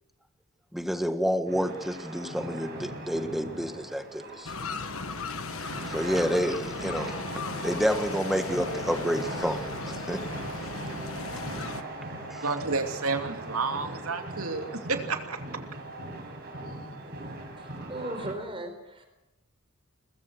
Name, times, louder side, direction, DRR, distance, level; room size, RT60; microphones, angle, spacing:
voice 1, 0.7-4.5 5.9-7.1 7.6-9.6 9.9-10.2 12.3-12.4, equal, ahead, 7 dB, 1.5 m, -29 dB
sound 1, 1.5-18.3, right 2 dB, 45° right, 6.5 m, -39 dB
sound 2, 4.4-11.8, left 4 dB, 70° left, 1.4 m, -37 dB
voice 2, 12.4-15.4, right 4 dB, 85° right, 5 dB, 2.7 m, -30 dB
voice 3, 17.6-19.1, right 1 dB, 25° right, 5 dB, 4.1 m, -37 dB
22.5 x 20.5 x 6.5 m, 0.95 s
head